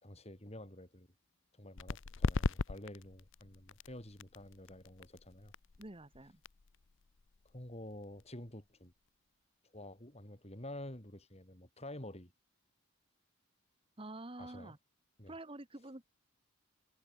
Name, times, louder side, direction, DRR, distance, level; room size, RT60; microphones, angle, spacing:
voice 1, 0.0-1.1 1.5-5.5 7.5-8.9 9.7-12.3 14.4-14.7 15.2-15.3, left 1 dB, 30° left, 3.6 m, -49 dB
sound 1, 1.8-9.1, left 3 dB, 60° left, 0.7 m, -40 dB
voice 2, 5.8-6.4 14.0-14.8 15.3-16.0, right 2 dB, 25° right, 1.4 m, -48 dB
head